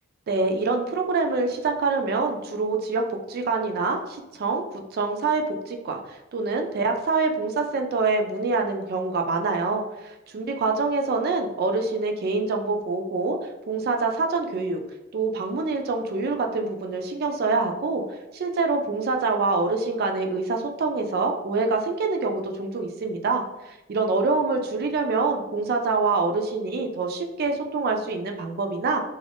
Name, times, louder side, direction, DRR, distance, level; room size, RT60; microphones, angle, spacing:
voice 1, 0.3-4.6 4.9-13.4 13.7-14.8 15.1-29.0, right 3 dB, 55° right, 4 dB, 0.3 m, -25 dB
2.5 x 2.2 x 3.4 m, 1.0 s
head